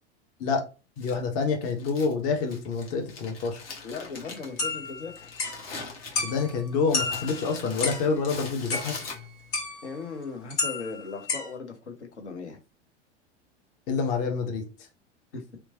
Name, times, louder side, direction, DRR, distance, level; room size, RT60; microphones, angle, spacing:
Crumpling crinkling, 1.0-9.6, left 4 dB, 55° left, 1.1 m, -42 dB
voice 1, 1.0-3.6 6.2-8.9 13.9-14.6, left 4 dB, 25° left, 0.5 m, -27 dB
voice 2, 3.8-5.3 9.8-12.6 15.3-15.6, left 4 dB, 70° left, 0.8 m, -38 dB
sound 1, 4.6-5.6 6.1-6.6 6.9-8.1 8.7-9.2 9.5-10.0 10.5-11.5, left 3 dB, 40° left, 1.6 m, -31 dB
2.9 x 2.1 x 2.8 m
figure-of-eight pair, 90°, 35 cm